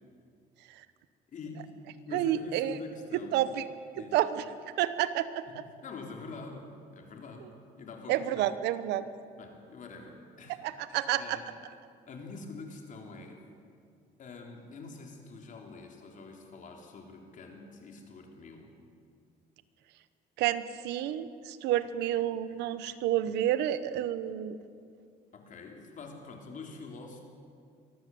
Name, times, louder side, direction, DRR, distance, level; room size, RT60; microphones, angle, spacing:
voice 1, 1.3-1.8 2.0-3.4 3.9-4.2 5.5-7.5 7.8-8.4 9.4-10.6 11.2-11.5 12.1-13.4 14.2-18.7 25.3-27.2, left 4 dB, 50° left, 2 dB, 3.9 m, -45 dB
voice 2, 2.1-2.8 3.3-3.7 4.1-4.4 4.8-5.4 8.1-9.0 10.6-11.4 20.4-24.6, right 12 dB, 85° right, 14 dB, 1.0 m, -29 dB
23.5 x 14.5 x 7.9 m, 2.3 s
cardioid pair, 110°, 17 cm